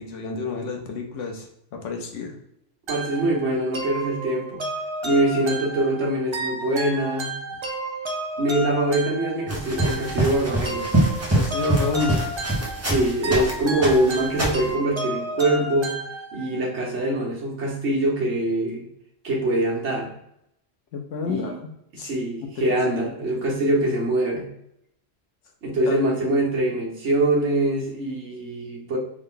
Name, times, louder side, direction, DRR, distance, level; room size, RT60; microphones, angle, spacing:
voice 1, 0.0-1.5 1.7-2.3 11.3-12.2 20.9-21.5 22.0-22.1 22.6-23.1 25.9-26.0, left 4 dB, 75° left, 3 dB, 1.1 m, -29 dB
sound 1, 2.9-16.7, right 1 dB, 40° right, 0.4 m, -32 dB
voice 2, 2.9-4.6 5.0-7.3 8.4-10.9 12.8-16.0 16.3-18.9 19.2-20.1 21.2-21.5 21.9-24.5 25.6-29.0, right 1 dB, 65° right, -3 dB, 1.4 m, -24 dB
sound 2, 9.5-13.5 13.8-14.7, right 1 dB, 15° right, 0.7 m, -24 dB
3.6 x 2.2 x 3.7 m, 0.77 s
omnidirectional pair, 1.3 m